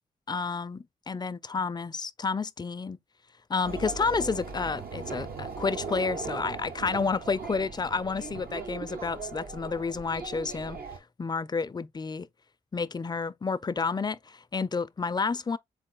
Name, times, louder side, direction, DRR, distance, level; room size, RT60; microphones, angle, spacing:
voice 1, 0.3-3.0 3.5-10.8 11.2-12.3 12.7-15.6, left 4 dB, 25° left, 0.4 m, -30 dB
sound 1, 3.6-11.0, right 5 dB, 75° right, 0.9 m, -38 dB
3.8 x 3.1 x 3.7 m
supercardioid pair, 45°, 16 cm